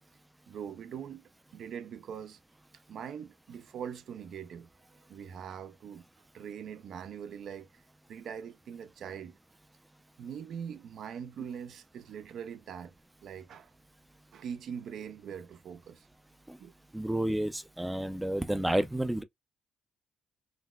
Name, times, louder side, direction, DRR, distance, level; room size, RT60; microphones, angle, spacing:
voice 1, 0.5-2.4 2.7-6.0 6.3-7.8 8.1-9.4 10.2-12.9 13.2-13.7 14.3-16.1 16.6-16.7, right 8 dB, 70° right, 0.4 m, -42 dB
voice 2, 16.9-19.2, right 1 dB, 10° right, 0.4 m, -30 dB
3.9 x 2.1 x 2.2 m
cardioid pair, 90°, 0 cm